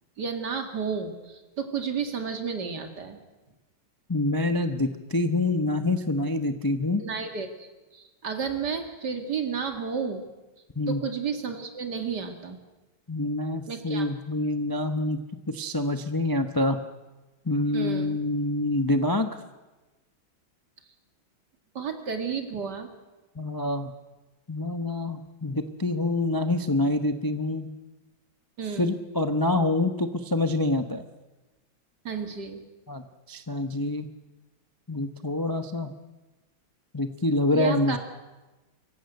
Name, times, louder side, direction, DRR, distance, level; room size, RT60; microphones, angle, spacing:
voice 1, 0.2-3.2 7.0-10.3 10.9-12.6 13.7-14.1 17.7-18.2 21.7-22.9 28.6-28.9 32.0-32.6 37.5-38.0, right 6 dB, 55° right, 5 dB, 2.7 m, -32 dB
voice 2, 4.1-7.0 10.8-11.0 13.1-15.2 15.5-16.8 17.4-19.3 23.4-23.9 24.5-27.7 28.8-31.0 32.9-33.0 33.3-34.1 34.9-35.9 36.9-38.0, left 2 dB, 30° left, 8 dB, 0.4 m, -26 dB
25.0 x 15.0 x 8.0 m, 1.1 s
omnidirectional pair, 2.2 m